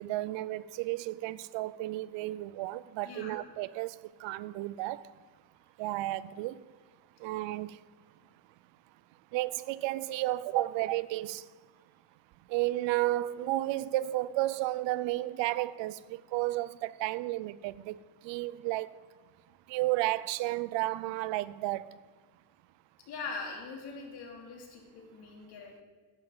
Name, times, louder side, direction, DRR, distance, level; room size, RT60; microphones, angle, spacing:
voice 1, 0.0-5.0 5.8-6.6 7.2-7.8 9.3-11.5 12.5-19.0 19.7-21.9, right 16 dB, 75° right, 0.5 m, -32 dB
voice 2, 3.0-3.4 23.1-25.8, left 4 dB, 60° left, 2.9 m, -42 dB
14.5 x 11.0 x 3.9 m
cardioid pair, 175°, 45 cm